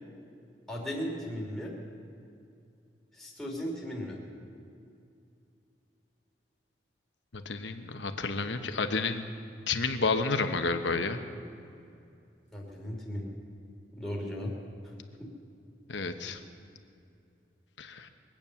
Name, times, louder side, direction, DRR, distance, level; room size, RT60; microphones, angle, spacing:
voice 1, 0.7-1.7 3.1-4.2 12.5-13.3 13.9-14.6 14.8-14.9 15.2-15.3, equal, ahead, -3 dB, 2.9 m, -36 dB
voice 2, 7.3-9.2 9.7-11.2 15.9-16.4 17.8-18.1, left 4 dB, 85° left, 7 dB, 1.1 m, -30 dB
23.0 x 9.0 x 7.0 m, 2.5 s
head